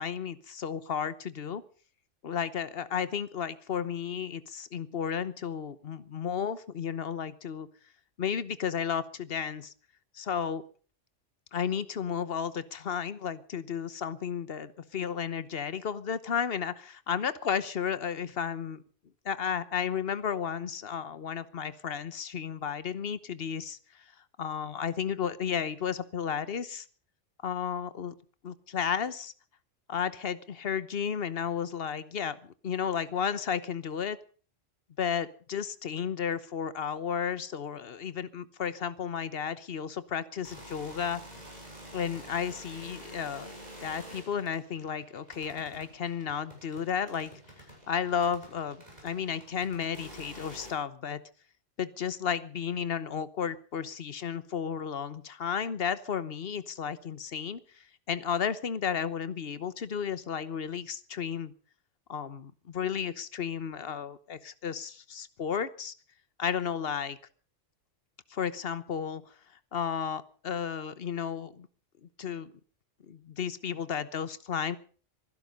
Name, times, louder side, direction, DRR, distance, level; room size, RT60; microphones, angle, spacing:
voice 1, 0.0-1.6 2.2-7.7 8.2-9.7 10.1-10.6 11.5-18.8 19.2-23.8 24.4-26.8 27.4-28.1 28.4-29.3 29.9-34.2 35.0-41.2 41.9-43.5 43.8-47.3 47.9-51.2 51.8-57.6 58.1-61.5 62.1-65.9 66.4-67.2 68.3-69.2 69.7-71.7 72.2-72.5 73.1-74.8, left 7 dB, 55° left, 15 dB, 1.2 m, -33 dB
sound 1, 40.3-50.7, equal, 35° right, 6.8 m, -49 dB
24.0 x 11.5 x 5.4 m, 0.42 s
omnidirectional pair, 1.3 m